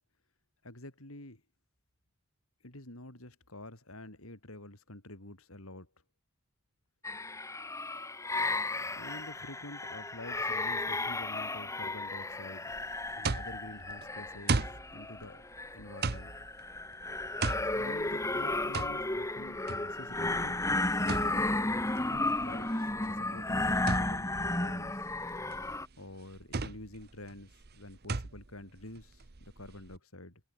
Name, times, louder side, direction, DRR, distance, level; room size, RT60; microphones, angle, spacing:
voice 1, 0.6-1.4 2.6-5.9 8.9-12.7 13.2-15.5 15.7-16.3 17.7-20.5 20.9-21.5 22.0-25.1 26.0-30.4, left 1 dB, 70° left, 5.2 m, -48 dB
sound 1, 7.0-25.9, left 2 dB, 15° left, 1.6 m, -34 dB
sound 2, 12.7-30.0, right 3 dB, 45° right, 1.0 m, -38 dB
head